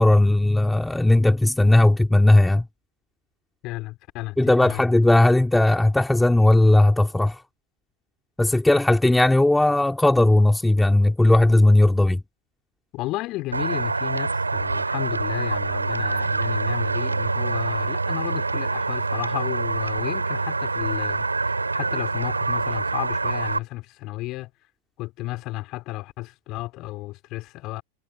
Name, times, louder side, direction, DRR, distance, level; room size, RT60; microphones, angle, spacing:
voice 1, 0.0-2.6 4.4-7.4 8.4-12.2, left 1 dB, 5° left, 3.5 m, -17 dB
voice 2, 3.6-4.8 12.9-24.5 25.0-27.8, left 19 dB, 40° left, 6.4 m, -33 dB
sound 1, 13.5-23.6, right 3 dB, 80° right, 5.4 m, -25 dB
figure-of-eight pair, 90°, 0 cm